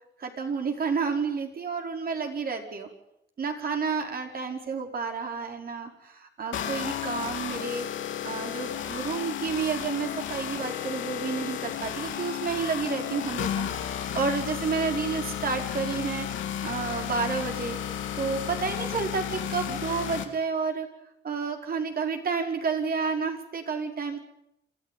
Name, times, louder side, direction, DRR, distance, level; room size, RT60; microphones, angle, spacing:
voice 1, 0.2-2.9 3.4-7.9 8.2-16.3 16.6-17.8 18.2-20.9 21.2-24.2, right 5 dB, 50° right, 4 dB, 5.0 m, -30 dB
sound 1, 6.5-20.2, left 9 dB, 75° left, 2.9 m, -33 dB
27.5 x 14.0 x 9.3 m, 0.81 s
cardioid pair, 90°, 20 cm